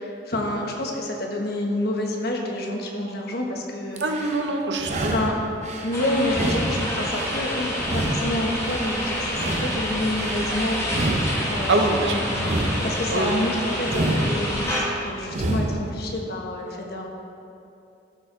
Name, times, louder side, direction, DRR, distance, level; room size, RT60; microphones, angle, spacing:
voice 1, 0.0-4.0 5.1-5.4 5.8-11.2 11.5-17.1, left 1 dB, 60° left, 0 dB, 1.1 m, -28 dB
sound 1, 4.0-4.4 4.8-5.9 6.3-7.4 7.8-8.9 9.3-10.4 10.8-11.9 12.3-13.4 13.8-14.8 15.3-15.9, right 1 dB, 40° right, 0.7 m, -28 dB
voice 2, 4.0-5.1 11.7-12.2 13.1-13.3, right 2 dB, 80° right, 3 dB, 0.8 m, -24 dB
sound 2, 5.9-14.8, equal, 15° left, 1.5 m, -28 dB
13.0 x 4.6 x 3.8 m, 2.7 s
head